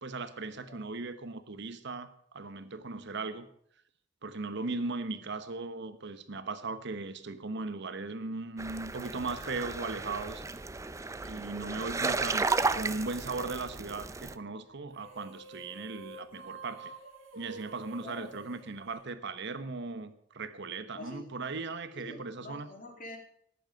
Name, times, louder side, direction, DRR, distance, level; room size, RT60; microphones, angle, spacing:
voice 1, 0.0-3.5 4.2-10.4 11.2-16.9 17.3-22.7, right 3 dB, 60° right, 1.1 m, -38 dB
voice 2, 0.6-0.9 4.7-4.8 18.0-18.3 20.9-21.4 21.9-23.2, left 2 dB, 45° left, 2.7 m, -47 dB
sound 1, 8.6-14.3, right 3 dB, 15° right, 0.5 m, -34 dB
sound 2, 14.9-19.6, right 3 dB, 80° right, 2.6 m, -48 dB
14.0 x 10.5 x 5.2 m
head